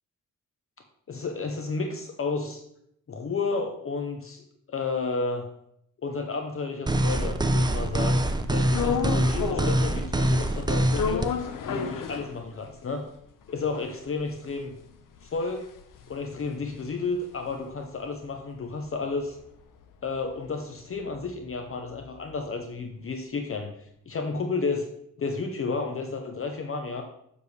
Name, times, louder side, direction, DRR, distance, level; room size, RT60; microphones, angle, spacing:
voice 1, 1.1-2.6 3.1-5.5 6.0-11.3 11.6-13.1 13.5-14.7 15.2-15.7 16.1-19.4 20.0-23.7 24.1-24.9 25.2-27.0, left 4 dB, 45° left, 5 dB, 0.7 m, -32 dB
sound 1, 6.9-11.3, right 1 dB, 15° right, 0.4 m, -24 dB
sound 2, 8.7-9.9 10.2-12.8 13.2-13.3 13.5-18.0 18.3-22.4, left 6 dB, 90° left, 0.7 m, -34 dB
7.0 x 6.6 x 3.2 m, 0.74 s
wide cardioid pair, 130°, 31 cm